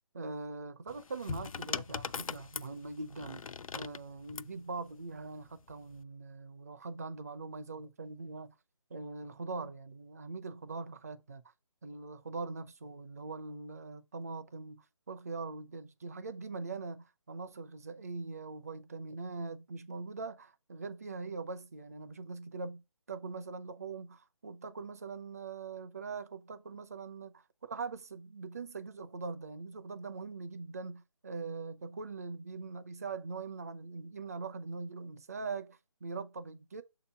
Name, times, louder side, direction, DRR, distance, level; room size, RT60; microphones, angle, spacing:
voice 1, 0.1-8.5 8.9-11.4 11.8-22.8 23.1-36.8, right 4 dB, 30° right, 0.5 m, -42 dB
sound 1, 0.9-4.6 5.6-6.0, left 6 dB, 85° left, 0.4 m, -40 dB
6.6 x 2.9 x 5.5 m
figure-of-eight pair, 165°, 17 cm